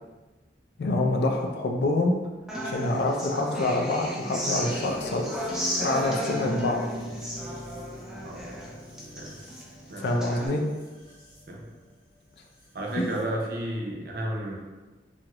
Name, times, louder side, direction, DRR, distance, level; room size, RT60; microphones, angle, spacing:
voice 1, 0.8-2.2 2.6-5.2 5.6-6.8 10.0-10.6 13.0-13.1, left 2 dB, 65° left, 2 dB, 0.4 m, -26 dB
Human voice / Acoustic guitar, 2.5-10.5, equal, 5° right, 0.3 m, -33 dB
sound 1, 4.5-13.2, equal, 25° left, 0.9 m, -47 dB
voice 2, 9.9-10.4 11.5-11.6 12.7-14.6, right 1 dB, 55° right, -1 dB, 0.5 m, -32 dB
2.8 x 2.4 x 2.9 m, 1.2 s
head